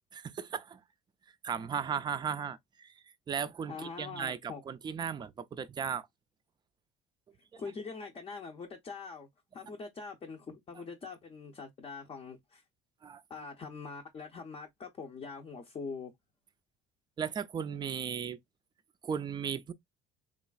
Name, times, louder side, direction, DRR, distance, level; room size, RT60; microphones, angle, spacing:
voice 1, 0.2-0.8 1.4-2.9 3.3-6.1 7.5-7.6 13.0-13.2 17.2-18.4 19.0-19.7, right 7 dB, 25° right, 0.4 m, -36 dB
voice 2, 3.7-4.6 7.6-12.6 13.3-16.1, left 4 dB, 30° left, 0.6 m, -43 dB
3.0 x 2.3 x 2.3 m
supercardioid pair, 85°, 18 cm